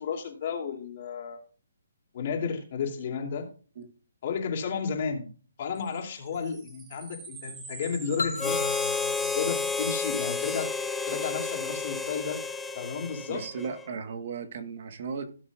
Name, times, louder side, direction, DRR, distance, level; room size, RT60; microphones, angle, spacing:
voice 1, 0.0-1.4 2.1-3.5 4.2-5.3 5.6-8.7 9.3-10.7 11.1-12.4 12.7-13.4, left 6 dB, 45° left, 2 dB, 2.8 m, -32 dB
sound 1, 5.8-10.4, right 5 dB, 15° right, 1.6 m, -46 dB
sound 2, 8.2-10.9, left 3 dB, 90° left, 0.7 m, -37 dB
Harmonica, 8.4-13.9, left 4 dB, 5° left, 0.6 m, -31 dB
voice 2, 13.3-15.3, right 5 dB, 50° right, 9 dB, 1.3 m, -36 dB
17.5 x 7.1 x 2.4 m, 0.39 s
hypercardioid pair, 160°, 0 cm